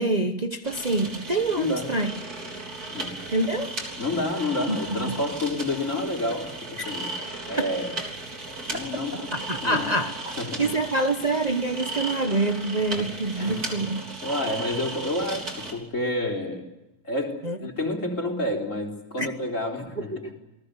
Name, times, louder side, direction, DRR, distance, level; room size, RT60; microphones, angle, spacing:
voice 1, 0.0-2.1 3.3-3.7 4.7-5.2 7.6-7.7 9.3-10.2 10.6-14.0 17.4-17.6 19.2-19.3, right 2 dB, 30° right, 1.1 m, -26 dB
sound 1, 0.6-15.7, right 2 dB, 70° right, 4.3 m, -36 dB
voice 2, 1.6-1.9 2.9-3.2 4.0-7.2 7.5-7.9 8.7-9.3 9.6-9.9 10.2-10.7 12.9-13.1 13.4-13.8 14.2-16.7 17.0-20.3, left 2 dB, 50° left, 4.3 m, -29 dB
28.5 x 18.5 x 8.3 m
omnidirectional pair, 1.7 m